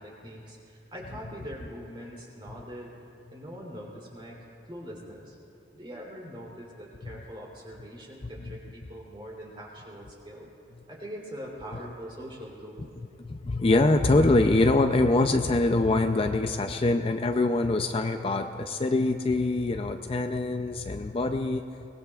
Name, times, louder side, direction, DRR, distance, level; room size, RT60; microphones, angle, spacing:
voice 1, 0.0-3.0 3.3-4.4 4.6-5.4 5.7-10.5 10.9-12.9, equal, 25° right, -3 dB, 3.2 m, -42 dB
voice 2, 13.2-21.9, left 2 dB, 30° left, 6 dB, 0.4 m, -24 dB
23.5 x 20.0 x 2.4 m, 2.7 s
head